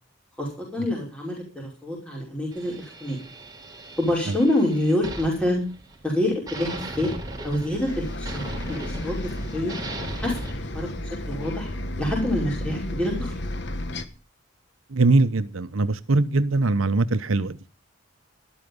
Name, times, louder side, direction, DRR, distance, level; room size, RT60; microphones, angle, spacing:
voice 1, 0.4-3.2 4.0-5.6 6.0-7.1 7.4-8.4 8.7-9.8 10.2-10.9 11.3-11.7 12.0-13.3, left 1 dB, 5° left, 5.3 m, -26 dB
sound 1, 2.5-6.1 6.5-10.5, right 2 dB, 20° right, 4.0 m, -38 dB
Bus, 7.8-14.0, left 1 dB, 55° left, 1.3 m, -32 dB
voice 2, 14.9-17.6, right 2 dB, 80° right, 0.9 m, -21 dB
13.0 x 12.5 x 5.4 m
head